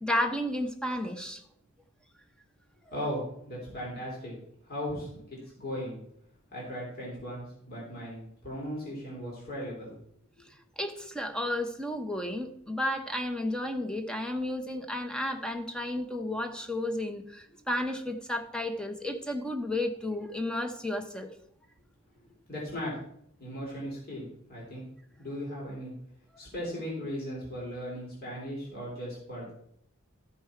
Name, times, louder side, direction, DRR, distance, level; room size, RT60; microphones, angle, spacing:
voice 1, 0.0-1.4 10.8-21.3, left 1 dB, 5° left, 6 dB, 0.9 m, -32 dB
voice 2, 2.9-4.3 4.6-6.0 6.5-10.0 22.5-23.0 23.4-24.8 25.2-25.9 26.4-29.5, equal, 50° left, -5 dB, 3.4 m, -37 dB
13.5 x 5.3 x 4.5 m, 0.70 s
head